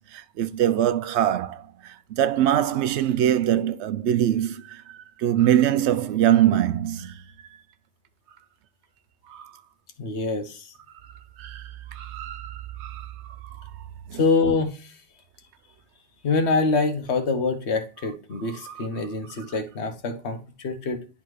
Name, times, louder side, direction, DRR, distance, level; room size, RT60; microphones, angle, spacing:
voice 1, 0.1-4.8 5.2-7.1 9.3-9.5 11.4-11.6 12.0-13.1 14.1-14.2 18.6-18.8, right 11 dB, 85° right, 0.9 m, -23 dB
voice 2, 10.0-10.7 14.2-14.9 16.2-21.1, left 3 dB, 80° left, 1.2 m, -25 dB
10.5 x 3.7 x 3.1 m
omnidirectional pair, 1.1 m